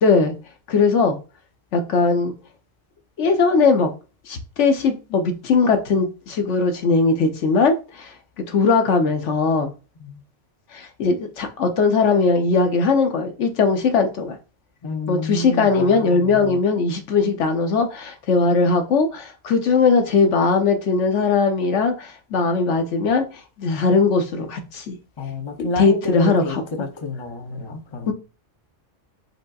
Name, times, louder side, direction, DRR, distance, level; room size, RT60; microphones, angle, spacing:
voice 1, 0.0-0.3 0.7-1.2 1.7-2.3 3.2-3.9 4.3-9.7 10.7-14.4 15.1-23.3 23.6-25.0 25.6-26.6 28.1-28.2, left 4 dB, 70° left, 1.1 m, -19 dB
voice 2, 14.8-16.6 25.2-28.1, left 2 dB, 30° left, 0.6 m, -29 dB
5.0 x 4.5 x 2.3 m
omnidirectional pair, 1.3 m